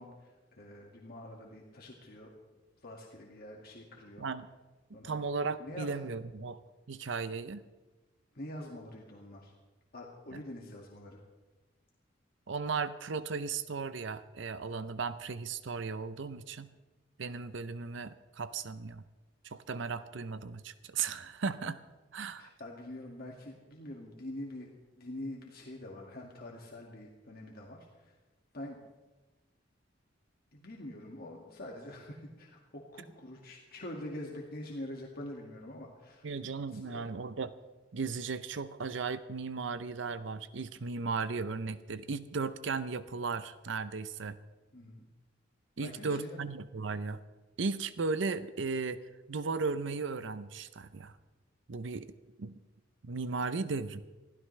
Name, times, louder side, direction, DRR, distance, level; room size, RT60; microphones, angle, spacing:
voice 1, 0.0-2.3 2.8-4.3 4.9-5.2 5.6-5.9 8.3-9.5 9.9-11.2 22.4-28.2 28.5-28.8 30.5-36.3 36.7-37.1 44.7-45.1 45.8-46.4, left 1 dB, 55° left, -1 dB, 2.0 m, -45 dB
voice 2, 5.0-6.6 6.9-7.6 12.5-16.7 17.2-19.0 19.4-21.8 22.1-22.5 36.2-37.5 37.9-44.4 45.8-47.2 47.6-51.2 51.7-52.1 52.4-52.5 53.0-54.0, right 4 dB, 70° right, 13 dB, 0.6 m, -36 dB
25.0 x 16.0 x 3.3 m, 1.2 s
head